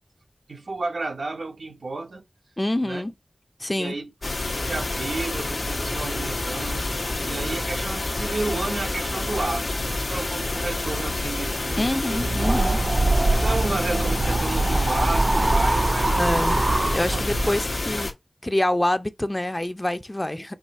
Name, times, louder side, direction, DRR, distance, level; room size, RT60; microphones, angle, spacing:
voice 1, 0.5-2.2 2.8-3.0 3.8-4.1 4.6-6.9 7.2-12.2 12.5-12.7 13.3-16.2 17.1-17.6, right 3 dB, 85° right, 0.7 m, -32 dB
voice 2, 2.6-3.1 3.6-4.0 11.8-12.8 16.2-16.7 16.9-18.1 18.4-20.6, left 1 dB, 20° left, 0.5 m, -26 dB
sound 1, 4.2-18.1, left 2 dB, 90° left, 1.2 m, -28 dB
sound 2, 12.2-17.6, right 2 dB, 35° right, 0.3 m, -23 dB
4.8 x 2.5 x 4.1 m
wide cardioid pair, 75°, 0 cm